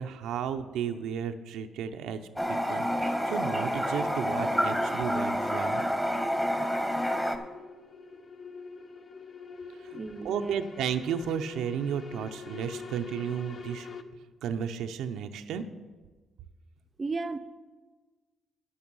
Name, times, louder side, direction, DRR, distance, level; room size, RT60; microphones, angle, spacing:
voice 1, 0.0-2.2 2.5-5.9 9.8-10.0 10.2-13.9 14.4-15.6, right 8 dB, 85° right, 7 dB, 0.6 m, -33 dB
Toilet flush, 2.4-7.4, equal, 5° left, 1.1 m, -28 dB
sound 1, 6.1-14.0, left 5 dB, 45° left, 0.7 m, -46 dB
voice 2, 9.9-10.6 17.0-17.4, right 3 dB, 30° right, 9 dB, 0.5 m, -34 dB
9.5 x 8.7 x 5.4 m, 1.3 s
cardioid pair, 90°, 0 cm